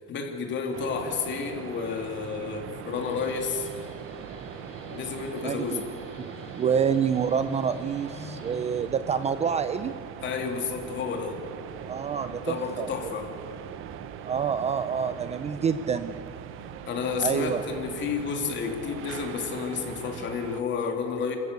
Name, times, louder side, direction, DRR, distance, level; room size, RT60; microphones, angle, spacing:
voice 1, 0.1-3.7 4.9-5.8 10.2-11.4 12.5-13.3 16.9-21.4, left 5 dB, 40° left, 3 dB, 2.9 m, -31 dB
sound 1, 0.7-20.6, right 9 dB, 45° right, 1.0 m, -41 dB
Guitar, 2.8-9.4, left 3 dB, 20° left, 2.6 m, -48 dB
voice 2, 5.4-5.8 6.2-6.3 6.5-9.9 11.9-12.9 14.3-16.1 17.2-17.6, right 7 dB, 20° right, 11 dB, 0.5 m, -27 dB
28.5 x 13.5 x 8.2 m, 2.8 s
cardioid pair, 150°, 30 cm